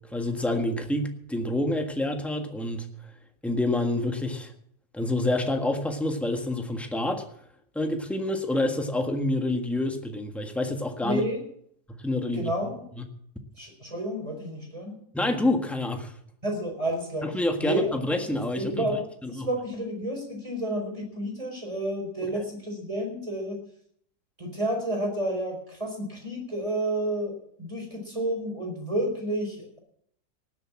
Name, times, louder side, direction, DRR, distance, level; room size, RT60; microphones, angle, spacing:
voice 1, 0.1-2.9 3.4-4.5 4.9-7.2 7.7-11.2 12.0-12.5 15.1-16.1 17.2-18.9 19.2-19.5 22.3-22.4, left 1 dB, ahead, 4 dB, 1.3 m, -27 dB
voice 2, 11.0-11.4 12.3-12.9 13.6-15.0 16.4-17.3 17.6-17.9 18.5-23.6 24.4-29.8, right 1 dB, 20° right, 1 dB, 4.6 m, -30 dB
18.5 x 8.0 x 7.5 m, 0.67 s
omnidirectional pair, 1.9 m